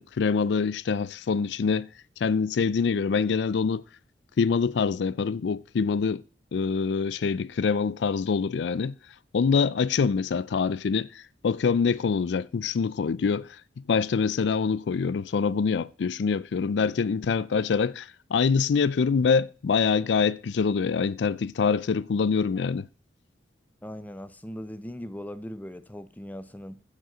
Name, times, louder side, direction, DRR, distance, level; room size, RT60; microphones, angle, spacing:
voice 1, 0.0-1.9 2.2-3.8 4.4-6.2 6.5-9.0 9.3-13.6 13.9-22.9, left 5 dB, 70° left, 0.4 m, -25 dB
voice 2, 23.8-26.8, equal, 10° left, 0.6 m, -39 dB
15.5 x 5.3 x 5.0 m
head